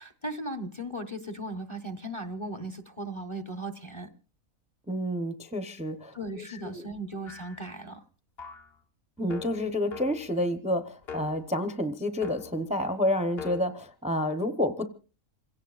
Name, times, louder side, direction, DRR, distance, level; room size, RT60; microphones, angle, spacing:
voice 1, 0.0-4.1 6.1-8.0, right 1 dB, 25° left, 8 dB, 1.0 m, -37 dB
voice 2, 4.9-6.8 9.2-14.9, left 1 dB, 5° right, 9 dB, 0.8 m, -29 dB
sound 1, 7.3-7.7 8.4-8.8 9.3-10.4 11.0-11.5 12.2-12.7 13.4-13.6, left 6 dB, 45° left, 1.4 m, -42 dB
27.5 x 17.0 x 2.5 m, 0.35 s
omnidirectional pair, 1.5 m